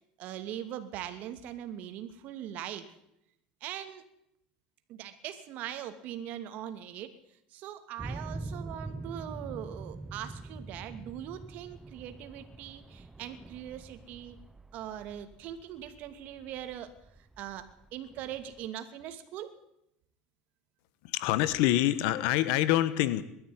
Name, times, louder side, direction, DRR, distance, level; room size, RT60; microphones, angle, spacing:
voice 1, 0.2-2.9 3.6-4.0 4.9-7.1 7.5-14.4 14.7-16.9 17.4-17.7 17.9-19.5, right 11 dB, 55° right, 9 dB, 2.7 m, -41 dB
sound 1, 8.0-18.7, right 2 dB, 10° right, 0.8 m, -44 dB
voice 2, 21.0-23.2, left 14 dB, 70° left, 16 dB, 1.3 m, -26 dB
21.0 x 13.0 x 9.5 m, 0.80 s
supercardioid pair, 130°, 3 cm